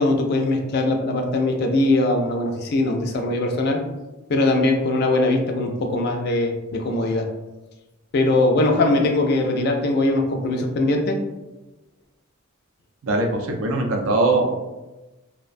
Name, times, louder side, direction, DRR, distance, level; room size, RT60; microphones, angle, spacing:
voice 1, 0.0-3.8 4.3-7.3 8.1-11.2, left 2 dB, 50° left, 3 dB, 0.3 m, -21 dB
voice 2, 13.0-14.5, right 2 dB, 80° right, 2 dB, 0.4 m, -21 dB
2.4 x 2.1 x 2.5 m, 1.1 s
head